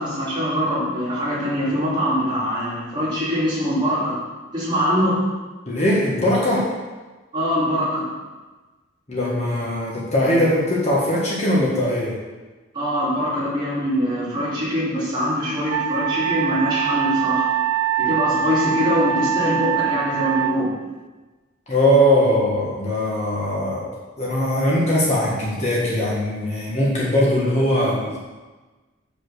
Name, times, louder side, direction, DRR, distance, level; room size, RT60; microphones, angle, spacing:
voice 1, 0.0-4.2 4.5-5.2 7.3-8.1 12.7-17.5 18.0-20.7, equal, 25° right, -9 dB, 3.1 m, -23 dB
voice 2, 5.7-6.7 9.1-12.1 21.7-23.9 24.2-28.2, equal, 35° left, -5 dB, 1.7 m, -20 dB
Wind instrument woodwind instrument, 15.7-20.6, right 9 dB, 90° right, 0.4 m, -23 dB
7.2 x 5.3 x 6.5 m, 1.3 s
head